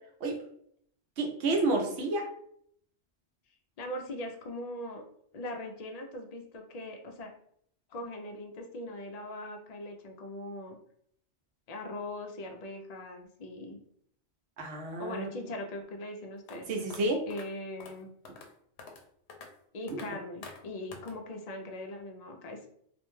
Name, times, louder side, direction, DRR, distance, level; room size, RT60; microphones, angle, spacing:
voice 1, 1.2-2.3 14.6-15.3 16.7-17.2 18.3-18.4 19.9-20.0, right 2 dB, 75° right, 2 dB, 0.9 m, -30 dB
voice 2, 3.8-5.0 5.3-7.3 7.9-10.8 11.7-13.8 15.0-18.1 19.7-22.7, left 1 dB, 60° left, 3 dB, 0.4 m, -40 dB
sound 1, 16.5-16.6 16.9-17.0 17.3-17.4 17.8-17.9 18.2-18.5 18.8-19.0 19.3-19.5 19.9-20.1 20.4-20.6 20.9-21.1, left 4 dB, 75° left, 0.8 m, -46 dB
2.5 x 2.1 x 3.1 m, 0.67 s
omnidirectional pair, 1.1 m